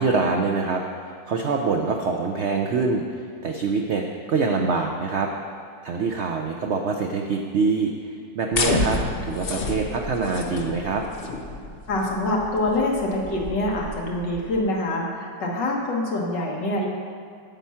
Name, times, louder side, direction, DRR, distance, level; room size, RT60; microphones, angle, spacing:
voice 1, 0.0-5.3 5.8-11.0, right 4 dB, 80° right, 2 dB, 0.6 m, -25 dB
sound 1, 8.5-14.6, left 3 dB, 55° left, 0.6 m, -30 dB
voice 2, 11.9-16.9, left 1 dB, 75° left, -1 dB, 2.0 m, -25 dB
8.9 x 7.4 x 5.7 m, 2.3 s
omnidirectional pair, 1.9 m